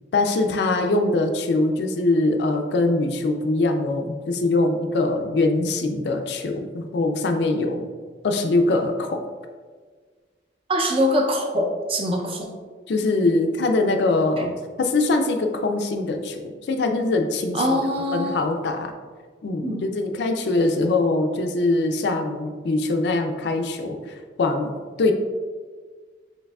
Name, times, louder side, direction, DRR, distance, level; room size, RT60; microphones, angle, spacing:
voice 1, 0.1-7.9 8.2-9.2 12.9-14.5 14.8-17.8 18.1-18.9 19.4-25.1, left 2 dB, 70° left, 5 dB, 0.4 m, -23 dB
voice 2, 10.7-12.5 17.5-18.4 19.6-19.9, equal, 30° right, 1 dB, 0.5 m, -23 dB
4.6 x 3.3 x 2.3 m, 1.5 s
head